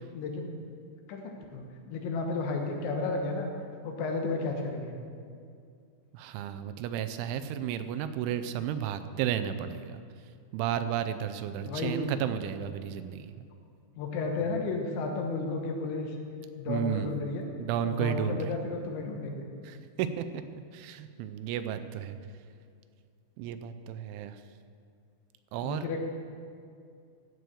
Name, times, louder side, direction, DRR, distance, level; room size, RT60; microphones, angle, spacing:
voice 1, 0.1-0.5 1.1-3.5 3.8-5.0 11.6-12.1 14.0-16.2 16.6-17.5 17.9-19.5 25.6-26.0, left 3 dB, 75° left, 2 dB, 3.4 m, -33 dB
voice 2, 6.1-10.0 10.5-13.4 16.7-17.1 17.6-18.5 19.6-22.2 23.4-24.4 25.5-25.9, right 9 dB, 85° right, 11 dB, 3.0 m, -33 dB
16.0 x 6.3 x 6.8 m, 2.3 s
omnidirectional pair, 5.5 m